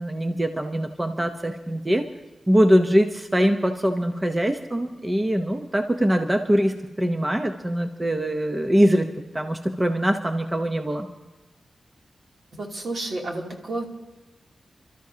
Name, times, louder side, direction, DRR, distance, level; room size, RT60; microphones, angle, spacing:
voice 1, 0.0-2.1 2.5-9.1 9.3-11.1, equal, 15° right, 5 dB, 0.7 m, -22 dB
voice 2, 12.5-13.8, right 2 dB, 65° right, -1 dB, 2.7 m, -31 dB
29.0 x 13.0 x 2.8 m, 1.1 s
wide cardioid pair, 125°, 0 cm